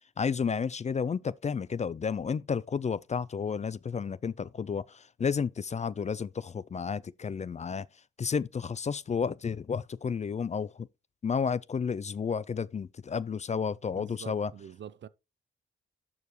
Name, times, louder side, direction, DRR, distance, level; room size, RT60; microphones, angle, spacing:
voice 1, 0.2-7.9 8.2-10.9 11.2-14.5, left 6 dB, 35° left, 0.4 m, -31 dB
voice 2, 14.0-15.1, right 9 dB, 60° right, 0.6 m, -45 dB
12.5 x 4.8 x 3.1 m
cardioid pair, 90°, 21 cm